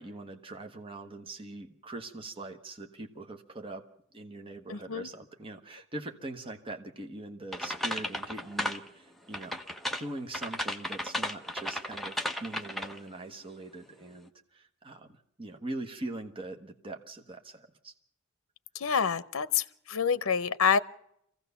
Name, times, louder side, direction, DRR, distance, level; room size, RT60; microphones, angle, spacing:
voice 1, 0.0-3.8 4.1-9.6 10.0-17.9, right 2 dB, 25° right, 4 dB, 1.2 m, -42 dB
voice 2, 4.7-5.1 18.8-19.6 19.9-20.8, left 6 dB, 70° left, 16 dB, 0.7 m, -27 dB
sound 1, 7.5-8.9 9.3-13.1, left 1 dB, ahead, 1.0 m, -34 dB
24.0 x 16.0 x 6.9 m, 0.74 s
head